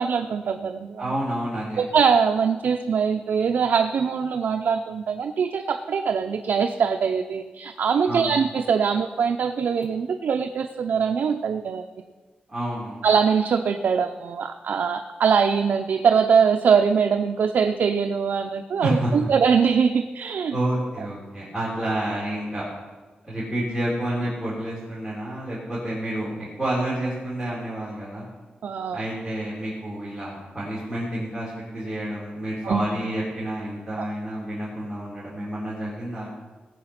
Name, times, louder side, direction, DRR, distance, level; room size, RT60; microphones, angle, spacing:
voice 1, 0.0-1.1 1.8-11.8 13.0-20.6 28.6-29.0 32.6-32.8, right 6 dB, 75° right, 5 dB, 0.6 m, -22 dB
voice 2, 1.0-1.8 8.1-8.3 12.5-13.0 18.8-19.1 20.5-22.7 23.2-28.2 28.9-36.3, right 1 dB, ahead, -10 dB, 3.5 m, -29 dB
18.0 x 7.8 x 5.9 m, 1.3 s
wide cardioid pair, 175°, 3 cm